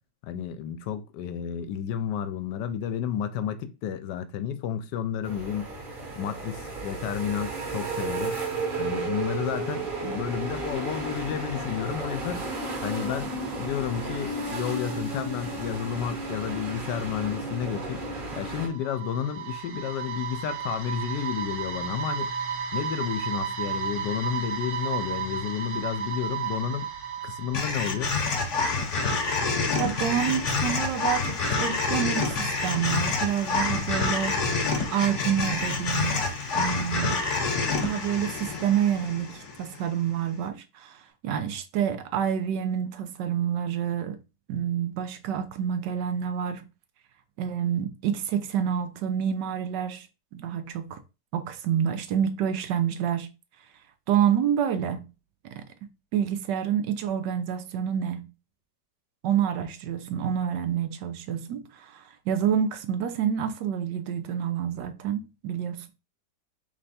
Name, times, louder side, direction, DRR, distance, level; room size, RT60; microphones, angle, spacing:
voice 1, 0.2-5.7 6.2-8.4 8.8-12.5 12.8-18.0 18.3-22.3 22.7-26.9 27.2-28.1, left 9 dB, 80° left, 1.2 m, -31 dB
sound 1, 5.2-18.7, right 3 dB, 40° right, 0.9 m, -33 dB
sound 2, 18.3-28.4, right 7 dB, 65° right, 1.3 m, -33 dB
sound 3, 27.5-39.9, left 3 dB, 50° left, 1.1 m, -27 dB
voice 2, 29.7-34.4 34.9-36.3 36.5-37.3 37.8-44.2 44.5-46.7 47.4-50.1 50.3-51.0 51.3-53.3 54.1-55.1 55.5-55.6 56.1-58.3 59.2-65.9, right 9 dB, 90° right, 1.3 m, -28 dB
3.3 x 3.3 x 4.1 m
omnidirectional pair, 1.9 m